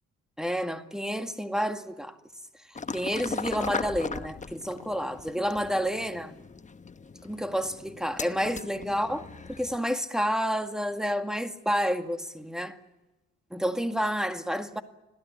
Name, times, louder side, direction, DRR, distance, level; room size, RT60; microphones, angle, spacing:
voice 1, 0.4-2.2 2.9-6.4 7.2-12.8 13.5-14.8, equal, ahead, 2.0 m, -29 dB
sound 1, 2.8-9.8, left 4 dB, 25° left, 1.0 m, -38 dB
26.5 x 17.0 x 9.6 m
cardioid pair, 90°, 30 cm